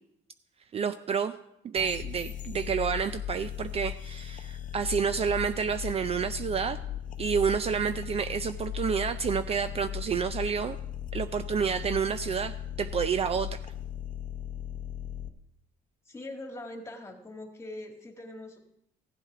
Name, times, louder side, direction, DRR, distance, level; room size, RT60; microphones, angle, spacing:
voice 1, 0.7-1.3 1.6-6.8 7.2-10.8 11.1-13.6, right 6 dB, 35° right, 11 dB, 0.4 m, -29 dB
sound 1, 1.8-15.3, left 10 dB, 50° left, 0.8 m, -37 dB
voice 2, 16.1-18.6, left 1 dB, 15° left, 3 dB, 2.0 m, -42 dB
15.0 x 7.9 x 4.7 m, 0.78 s
cardioid pair, 110°, 17 cm